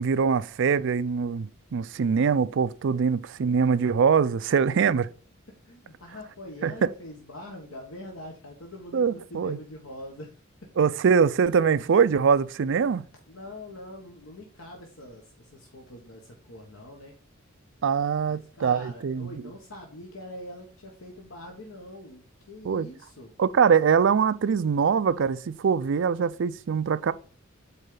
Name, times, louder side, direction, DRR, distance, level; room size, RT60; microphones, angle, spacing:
voice 1, 0.0-5.1 6.6-6.9 8.9-9.6 10.8-13.0 17.8-19.4 22.6-22.9 23.4-27.1, right 6 dB, 60° right, 0.4 m, -23 dB
voice 2, 5.6-9.0 9.3-10.7 13.3-17.1 18.3-23.3, left 1 dB, 75° left, 1.4 m, -44 dB
8.2 x 4.2 x 3.8 m
head